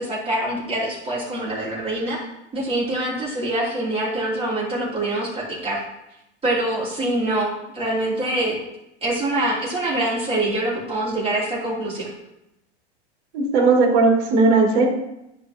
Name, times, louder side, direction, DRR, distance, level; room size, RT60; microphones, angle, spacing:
voice 1, 0.0-2.2 2.5-5.8 6.4-8.6 9.0-12.1, right 1 dB, 15° right, -6 dB, 3.4 m, -25 dB
voice 2, 13.3-14.9, right 3 dB, 70° right, -1 dB, 3.2 m, -17 dB
14.0 x 5.0 x 3.1 m, 0.86 s
hypercardioid pair, 115°, 33 cm